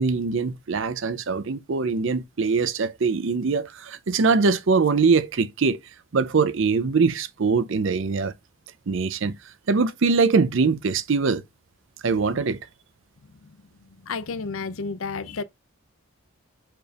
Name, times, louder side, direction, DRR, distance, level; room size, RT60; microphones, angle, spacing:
voice 1, 0.0-5.8 6.1-8.3 8.9-9.3 9.7-11.4 12.0-12.6, right 4 dB, 60° right, 0.5 m, -22 dB
voice 2, 13.3-15.4, left 4 dB, 65° left, 0.6 m, -33 dB
5.1 x 4.4 x 2.4 m
head